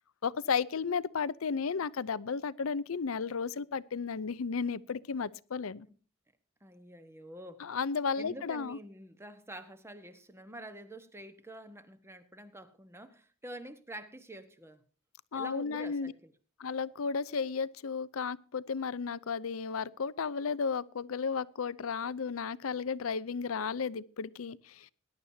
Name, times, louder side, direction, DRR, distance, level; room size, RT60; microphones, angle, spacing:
voice 1, 0.2-5.9 7.6-8.8 15.3-16.1 16.6-24.9, left 5 dB, 85° left, 0.6 m, -34 dB
voice 2, 6.6-7.7 8.2-14.8 15.3-16.3, right 1 dB, 15° right, 1.2 m, -47 dB
20.5 x 11.0 x 2.8 m
head